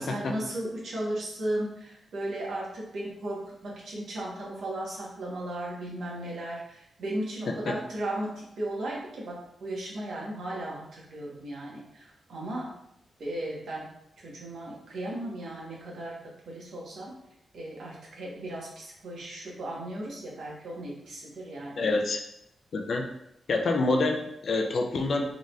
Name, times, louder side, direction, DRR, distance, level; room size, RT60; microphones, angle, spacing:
voice 1, 0.0-12.7 13.2-13.9 14.2-16.2 16.5-17.1 17.5-21.9, right 1 dB, 65° right, -4 dB, 1.3 m, -36 dB
voice 2, 21.8-22.2 22.7-23.0 23.5-25.3, left 2 dB, 50° left, 3 dB, 0.5 m, -26 dB
4.0 x 3.7 x 2.5 m, 0.77 s
wide cardioid pair, 155°, 0 cm